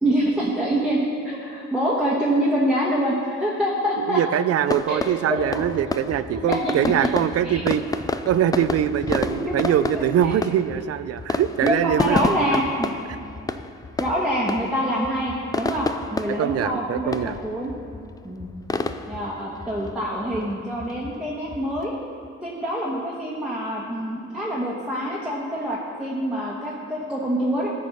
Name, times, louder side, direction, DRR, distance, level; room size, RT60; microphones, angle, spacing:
voice 1, 0.0-4.2 4.9-5.0 5.3-5.6 6.3-7.1 7.4-7.6 9.3-10.3 11.6-12.9 14.0-17.7 18.2-18.5 19.1-21.9 22.4-27.7, equal, 5° right, -6 dB, 1.2 m, -25 dB
voice 2, 4.0-7.8 8.3-12.6 16.4-17.4, right 10 dB, 55° right, 13 dB, 0.4 m, -23 dB
sound 1, 4.7-22.3, left 3 dB, 15° left, 0.3 m, -31 dB
14.0 x 4.8 x 4.1 m, 2.4 s
cardioid pair, 90°, 30 cm